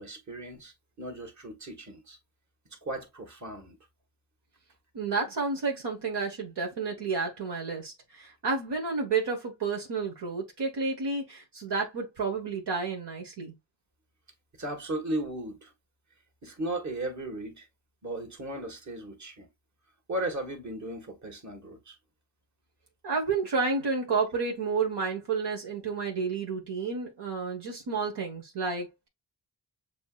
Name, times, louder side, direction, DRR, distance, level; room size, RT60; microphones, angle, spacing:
voice 1, 0.0-2.2 2.8-3.8 14.6-15.7 16.4-17.7 18.0-19.5 20.1-22.0, right 1 dB, 40° right, 1.7 m, -36 dB
voice 2, 4.9-13.5 23.0-29.1, right 4 dB, 70° right, 1.4 m, -31 dB
7.0 x 3.0 x 2.4 m
cardioid pair, 85°, 42 cm